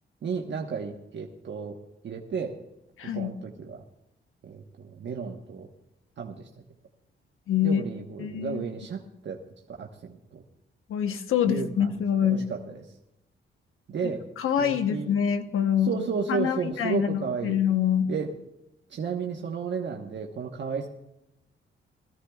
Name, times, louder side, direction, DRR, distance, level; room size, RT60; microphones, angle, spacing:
voice 1, 0.2-1.8 2.0-2.6 3.1-3.8 4.4-5.7 6.2-6.5 7.6-9.4 9.8-10.4 11.4-11.9 12.2-12.6 13.9-14.3 14.6-15.1 15.8-17.6 18.1-18.3 18.9-20.9, right 6 dB, 60° right, 0 dB, 1.2 m, -33 dB
voice 2, 3.0-3.3 7.5-7.8 8.2-8.6 10.9-12.4 14.0-15.9 16.3-18.1, left 8 dB, 80° left, 8 dB, 1.0 m, -25 dB
21.0 x 14.5 x 2.4 m, 0.88 s
cardioid pair, 100°, 21 cm